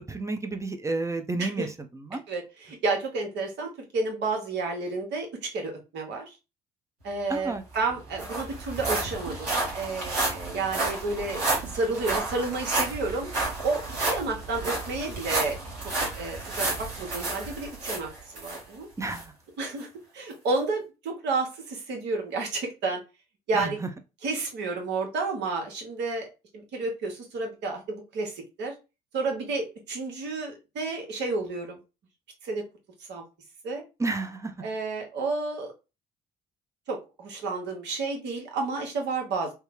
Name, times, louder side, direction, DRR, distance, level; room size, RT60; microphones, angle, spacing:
voice 1, 0.0-2.2 7.3-7.6 19.0-19.3 23.5-23.9 34.0-34.5, right 3 dB, 15° right, 7 dB, 0.6 m, -31 dB
voice 2, 2.3-6.3 7.0-13.3 13.6-15.6 16.2-18.9 19.6-19.9 20.1-23.0 23.5-23.8 24.2-26.3 26.5-28.7 29.1-31.8 32.4-32.6 33.1-33.2 33.6-33.8 34.6-35.7 36.9-39.5, right 3 dB, 65° right, 2 dB, 1.0 m, -31 dB
sound 1, 7.4-7.5 7.7-18.6 19.1-19.2 19.8-19.9, right 2 dB, 80° right, 1.2 m, -31 dB
3.3 x 2.0 x 3.1 m, 0.28 s
hypercardioid pair, 50°, 20 cm